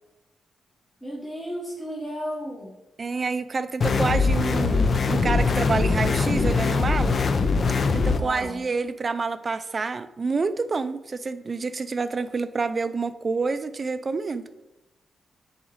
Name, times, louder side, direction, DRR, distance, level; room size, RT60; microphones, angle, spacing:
voice 1, 1.0-2.8 8.1-8.6, equal, 15° left, -5 dB, 1.3 m, -34 dB
voice 2, 3.0-7.2 7.9-14.4, right 4 dB, 35° right, 12 dB, 0.4 m, -28 dB
sound 1, 3.8-8.2, left 4 dB, 45° left, 0.5 m, -22 dB
9.9 x 4.1 x 3.2 m, 1.0 s
wide cardioid pair, 130°, 0 cm